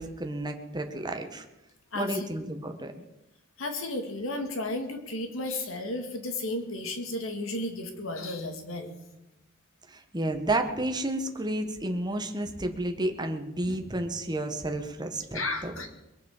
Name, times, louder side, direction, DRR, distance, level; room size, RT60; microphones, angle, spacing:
voice 1, 0.0-1.4 1.9-2.9 9.9-15.7, right 1 dB, 20° right, 5 dB, 1.5 m, -31 dB
voice 2, 1.9-2.2 3.6-8.9 13.6-13.8 15.3-15.9, left 2 dB, 80° left, 5 dB, 2.4 m, -33 dB
22.0 x 7.4 x 7.3 m, 0.96 s
head